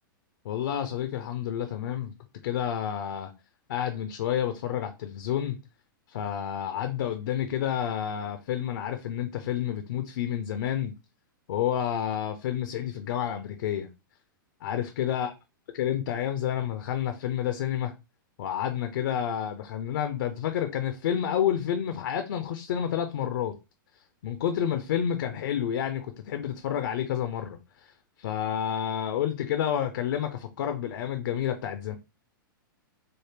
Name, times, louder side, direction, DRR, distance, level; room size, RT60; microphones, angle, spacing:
voice 1, 0.4-2.1 2.4-3.3 3.7-5.6 6.1-10.9 11.5-13.9 14.6-15.3 15.8-17.9 18.4-23.5 24.2-27.9 28.2-32.0, left 9 dB, 65° left, 0.5 m, -29 dB
3.3 x 2.1 x 3.3 m
hypercardioid pair, 120°, 11 cm